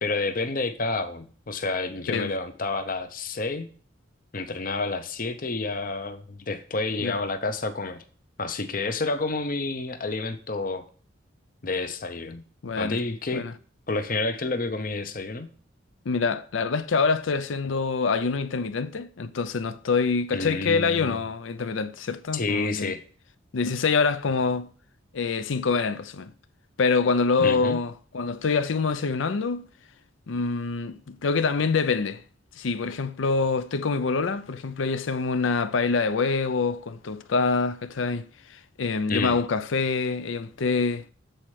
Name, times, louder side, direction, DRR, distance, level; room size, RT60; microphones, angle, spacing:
voice 1, 0.0-3.7 4.3-8.0 8.4-10.8 11.6-12.4 12.8-13.5 13.9-15.5 20.3-21.2 22.3-23.0 27.4-27.8 39.1-39.4, left 3 dB, 45° left, 0.7 m, -29 dB
voice 2, 12.6-13.0 13.3-13.5 16.1-22.9 23.5-24.7 25.1-26.3 26.8-29.7 30.3-32.2 32.6-41.0, left 4 dB, 80° left, 0.6 m, -25 dB
7.8 x 4.3 x 4.8 m
head